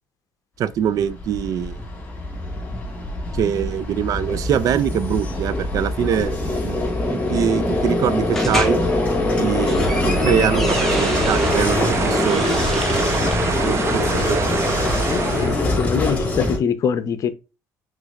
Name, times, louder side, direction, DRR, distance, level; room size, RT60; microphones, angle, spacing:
voice 1, 0.6-1.8 3.3-6.8 7.1-8.8 9.4-12.6 13.6-14.5, right 9 dB, 55° right, 0.4 m, -23 dB
Vehicle, 1.0-16.6, left 1 dB, 20° left, 2.2 m, -23 dB
sound 1, 8.3-8.8 9.4-11.6 12.1-13.4, equal, 5° left, 1.3 m, -30 dB
sound 2, 10.7-15.6, right 5 dB, 40° right, 0.9 m, -26 dB
voice 2, 15.1-17.3, left 7 dB, 50° left, 0.7 m, -23 dB
5.0 x 3.9 x 2.4 m
cardioid pair, 100°, 7 cm